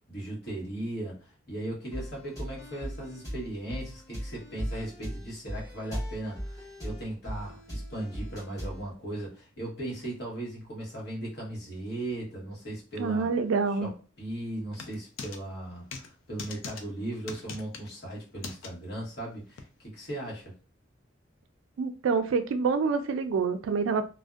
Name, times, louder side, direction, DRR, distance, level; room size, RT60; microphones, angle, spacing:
voice 1, 0.1-13.3 13.7-13.9 14.2-20.5, right 1 dB, 50° left, 1.1 m, -37 dB
sound 1, 1.9-8.9, equal, 15° left, 1.1 m, -38 dB
voice 2, 13.0-13.9 21.8-24.1, right 5 dB, 75° right, 0.3 m, -27 dB
sound 2, 14.7-15.4 15.9-16.1 16.4-16.8 17.3-17.9 18.4-18.7 19.6-19.7, left 5 dB, 75° left, 0.4 m, -40 dB
2.5 x 2.1 x 2.3 m
head